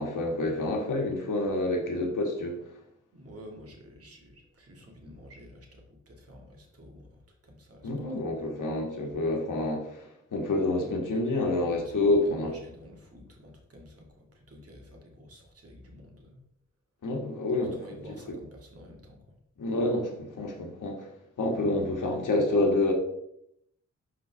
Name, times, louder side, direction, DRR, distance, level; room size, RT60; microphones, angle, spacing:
voice 1, 0.0-2.6 7.8-12.5 17.0-18.0 19.6-21.1 21.4-22.9, left 2 dB, 85° left, 1.7 m, -28 dB
voice 2, 3.1-7.9 11.7-16.4 17.8-19.4, equal, 50° right, 1.9 m, -50 dB
11.5 x 4.0 x 3.4 m
wide cardioid pair, 140°, 30 cm